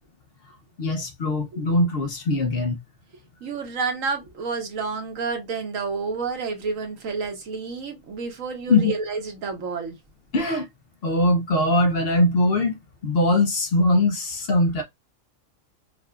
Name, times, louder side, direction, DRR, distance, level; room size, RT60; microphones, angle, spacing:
voice 1, 0.8-2.8 8.7-8.9 10.3-10.7 11.0-12.8 13.0-14.8, left 1 dB, 55° left, 0.8 m, -21 dB
voice 2, 3.4-10.0, right 4 dB, 80° right, 1.4 m, -30 dB
4.8 x 2.4 x 2.3 m
omnidirectional pair, 1.4 m